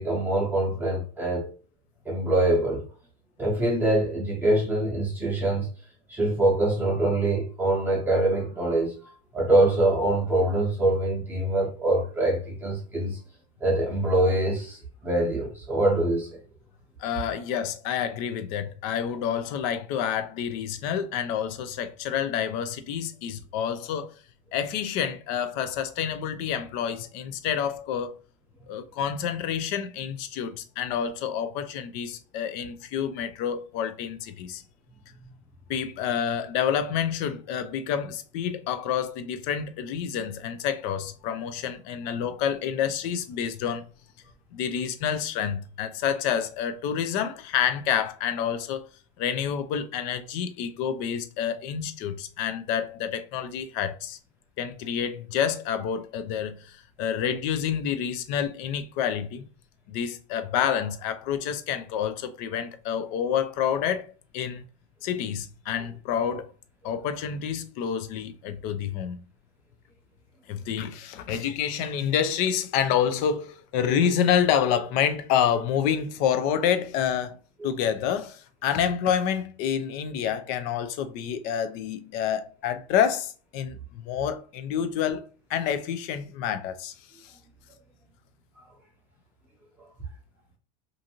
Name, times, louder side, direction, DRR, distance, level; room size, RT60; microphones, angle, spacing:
voice 1, 0.0-1.5 2.0-2.8 3.4-5.7 6.1-8.9 9.3-13.2 13.6-16.4, right 1 dB, 10° right, 0.7 m, -24 dB
voice 2, 17.0-24.1 24.5-28.1 28.7-34.6 35.7-43.8 44.5-48.8 49.2-54.2 54.6-56.7 57.0-59.5 59.9-64.1 64.3-64.6 65.0-66.5 66.8-69.2 70.5-77.4 77.6-85.2 85.5-86.9, left 8 dB, 55° left, 0.4 m, -28 dB
2.6 x 2.5 x 2.8 m
supercardioid pair, 135°, 18 cm